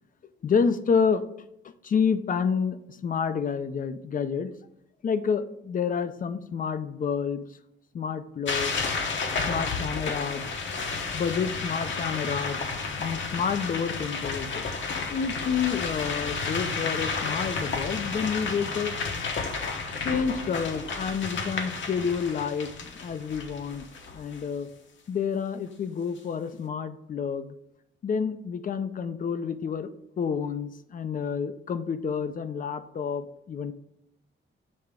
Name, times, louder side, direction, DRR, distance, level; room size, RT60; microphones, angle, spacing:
voice 1, 0.4-1.2 1.8-4.5 5.0-7.4 7.9-8.8 9.5-10.5 11.1-12.6 13.0-14.6 15.1-19.0 20.0-22.7 23.0-23.8 24.1-24.7 25.1-27.5 28.0-29.9 30.2-33.7, left 6 dB, 40° left, 11 dB, 0.5 m, -29 dB
sound 1, 8.5-24.4, left 4 dB, 65° left, 1.1 m, -32 dB
7.6 x 3.5 x 5.0 m, 0.81 s
wide cardioid pair, 160°, 21 cm